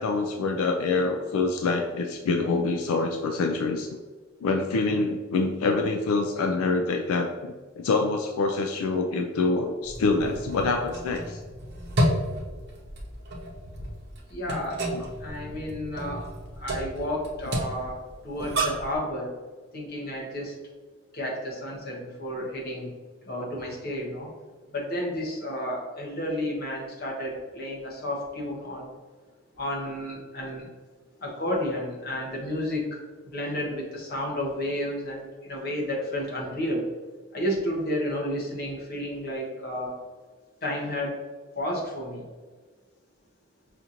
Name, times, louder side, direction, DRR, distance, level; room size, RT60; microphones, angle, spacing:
voice 1, 0.0-3.9 4.4-11.4 14.9-15.1, left 3 dB, 85° left, 4 dB, 0.3 m, -26 dB
sound 1, 9.8-19.0, equal, 50° right, 0.8 m, -31 dB
voice 2, 14.3-16.2 16.6-18.0 18.2-19.3 19.7-20.5 21.1-22.9 23.3-24.3 24.7-29.0 29.6-30.7 31.2-32.9 33.2-36.8 37.3-39.9 40.6-41.2 41.5-42.3, left 1 dB, 45° left, -2 dB, 1.0 m, -31 dB
5.6 x 2.5 x 2.8 m, 1.4 s
head